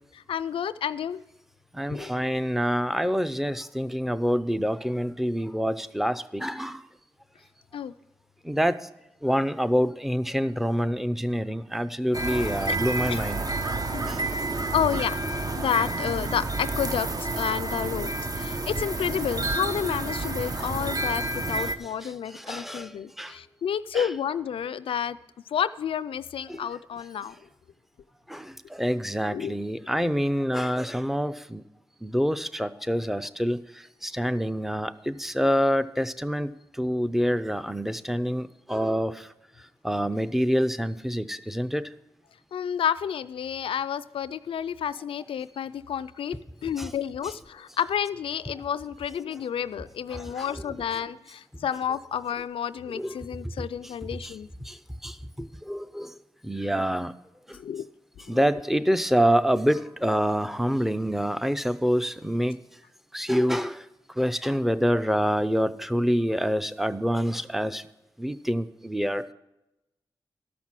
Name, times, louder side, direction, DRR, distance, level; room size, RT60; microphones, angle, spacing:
voice 1, 0.1-1.2 1.9-2.1 7.7-7.9 12.7-12.8 13.1-13.3 13.9-14.1 14.7-15.2 15.6-25.2 25.5-27.4 29.3-29.5 42.5-54.5 57.5-57.9 58.3-58.4, left 8 dB, 80° left, 13 dB, 0.4 m, -30 dB
voice 2, 1.7-6.8 8.4-8.8 9.2-13.4 13.9-14.3 20.6-20.7 22.0-22.9 23.2-23.3 23.9-24.1 26.5-26.6 28.3-31.6 32.0-33.6 34.0-36.5 36.8-39.3 39.8-41.9 46.8-46.9 50.1-50.5 53.0-53.1 53.6-53.7 54.2-54.3 54.7-54.8 55.0-56.1 56.4-57.1 58.3-62.6 63.1-63.8 64.2-67.8 68.2-69.2, equal, 5° right, 14 dB, 0.6 m, -26 dB
sound 1, 12.1-21.7, right 2 dB, 45° right, 0.9 m, -29 dB
sound 2, 22.3-23.6 24.7-25.1 26.6-26.8, left 1 dB, 85° right, 5.3 m, -60 dB
13.0 x 6.0 x 7.4 m, 0.94 s
cardioid pair, 55°, 9 cm